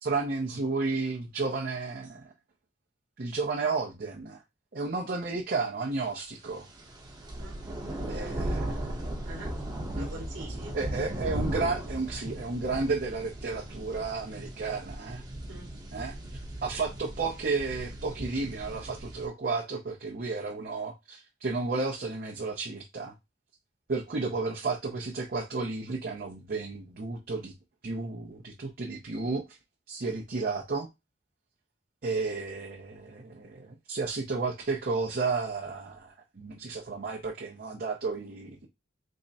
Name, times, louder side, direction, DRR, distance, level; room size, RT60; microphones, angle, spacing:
voice 1, 0.0-2.3 3.2-4.4 4.7-6.7 8.1-9.0 9.9-10.1 10.7-15.2 15.9-16.1 16.6-23.1 23.9-27.5 27.8-29.4 29.9-30.9 32.0-38.7, right 3 dB, 55° right, 0.7 m, -32 dB
sound 1, 6.6-19.3, right 1 dB, 20° right, 0.8 m, -37 dB
voice 2, 8.0-8.5 9.2-9.6 9.9-10.8 15.5-15.7, right 1 dB, 85° right, 1.0 m, -44 dB
3.6 x 2.1 x 4.0 m
head